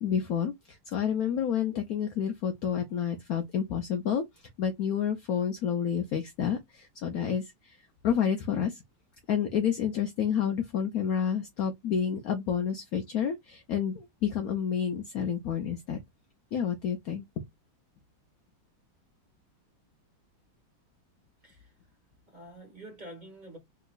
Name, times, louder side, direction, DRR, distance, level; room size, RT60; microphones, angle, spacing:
voice 1, 0.0-4.2 4.6-7.8 8.0-8.8 9.3-16.0 16.5-17.2, left 8 dB, 85° left, 0.8 m, -29 dB
voice 2, 21.4-21.7 22.3-23.6, right 1 dB, 25° right, 1.5 m, -47 dB
3.4 x 2.9 x 2.3 m
omnidirectional pair, 2.2 m